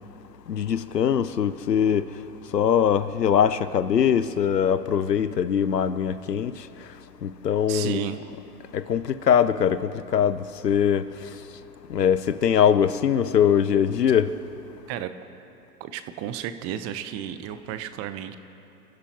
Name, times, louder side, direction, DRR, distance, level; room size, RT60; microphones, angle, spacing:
voice 1, 0.5-2.1 2.5-6.5 7.2-8.1 8.7-11.1 11.9-14.3, left 8 dB, 80° left, 0.8 m, -22 dB
voice 2, 7.7-8.2 14.9-15.3 15.8-18.4, right 10 dB, 30° right, 0.9 m, -33 dB
29.0 x 15.5 x 3.0 m
figure-of-eight pair, 100°, 48 cm